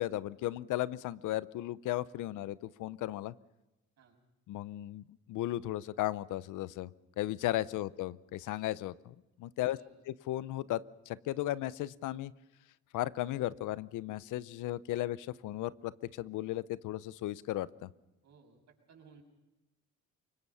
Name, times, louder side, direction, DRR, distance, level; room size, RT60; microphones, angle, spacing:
voice 1, 0.0-3.3 4.5-6.9 7.2-9.8 10.1-12.3 12.9-17.9, left 15 dB, 85° left, 18 dB, 0.7 m, -35 dB
voice 2, 9.6-10.0 18.2-19.2, right 5 dB, 60° right, 1 dB, 7.0 m, -60 dB
25.0 x 22.0 x 5.6 m, 1.0 s
cardioid pair, 90°, 30 cm